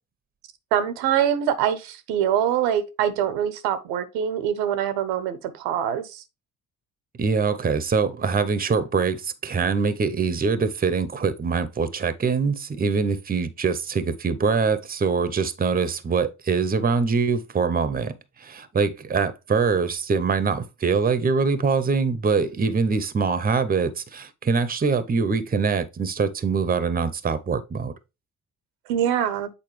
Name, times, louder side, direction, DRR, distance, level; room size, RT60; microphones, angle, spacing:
voice 1, 0.7-6.2 28.9-29.5, right 9 dB, 75° right, 0.8 m, -24 dB
voice 2, 7.2-18.1 18.4-27.9, right 5 dB, 20° right, 0.7 m, -23 dB
7.5 x 4.1 x 3.2 m
hypercardioid pair, 50°, 40 cm